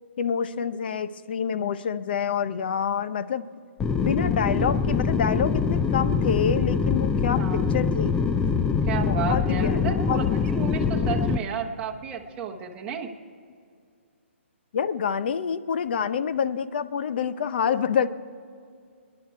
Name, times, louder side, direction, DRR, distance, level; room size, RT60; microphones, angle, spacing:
voice 1, 0.2-3.4 4.0-8.2 9.0-10.4 14.7-18.1, left 7 dB, 50° left, 13 dB, 0.7 m, -27 dB
sound 1, 3.8-11.4, left 5 dB, 10° left, 0.4 m, -24 dB
voice 2, 7.4-7.7 8.8-13.1, right 6 dB, 15° right, 1 dB, 1.1 m, -32 dB
28.0 x 10.5 x 4.6 m, 2.4 s
hypercardioid pair, 160°, 7 cm